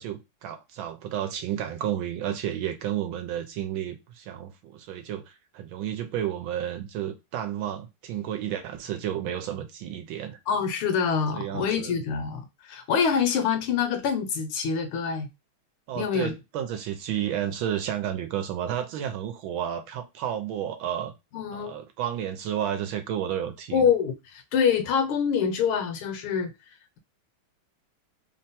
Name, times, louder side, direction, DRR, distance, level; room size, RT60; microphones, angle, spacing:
voice 1, 0.0-10.4 11.3-11.9 15.9-21.1 21.5-23.9, right 10 dB, 75° right, 1.3 m, -31 dB
voice 2, 10.5-15.3 15.9-16.3 21.3-21.7 23.7-26.5, left 6 dB, 75° left, 1.6 m, -25 dB
3.7 x 2.1 x 4.0 m
omnidirectional pair, 2.4 m